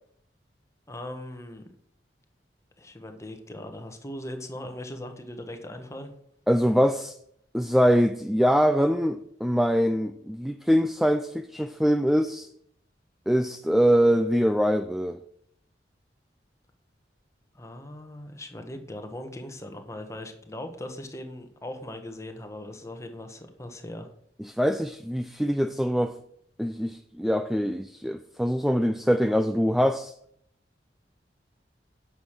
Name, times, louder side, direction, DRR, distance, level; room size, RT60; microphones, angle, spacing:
voice 1, 0.9-1.7 2.8-6.1 17.5-24.1, left 1 dB, 15° left, 1.2 m, -39 dB
voice 2, 6.5-7.2 7.5-12.5 13.3-15.2 24.4-26.2 26.6-30.1, equal, ahead, 0.3 m, -23 dB
9.3 x 6.3 x 6.6 m
head